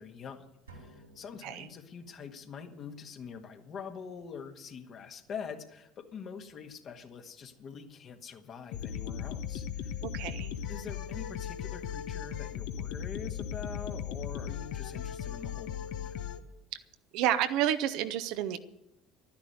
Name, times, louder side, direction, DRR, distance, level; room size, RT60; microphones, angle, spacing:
voice 1, 0.0-10.0 10.7-16.2, left 6 dB, 40° left, 5 dB, 1.7 m, -44 dB
sound 1, 0.7-2.4, right 2 dB, 80° right, 2.9 m, -55 dB
sound 2, 8.7-16.4, left 9 dB, 55° left, 1.1 m, -37 dB
voice 2, 10.0-10.6 17.1-18.6, right 11 dB, 55° right, 10 dB, 0.9 m, -30 dB
12.5 x 10.5 x 8.1 m, 0.86 s
figure-of-eight pair, 60°, 0 cm